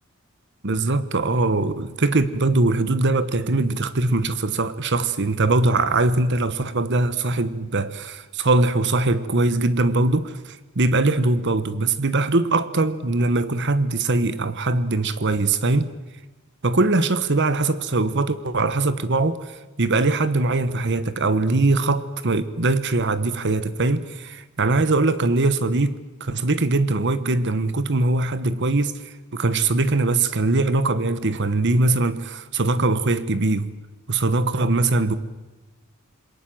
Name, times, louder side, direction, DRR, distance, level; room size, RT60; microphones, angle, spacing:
voice 1, 0.6-15.9 16.6-33.7 34.1-35.1, right 2 dB, 55° right, 1.2 m, -21 dB
27.5 x 22.0 x 7.8 m
head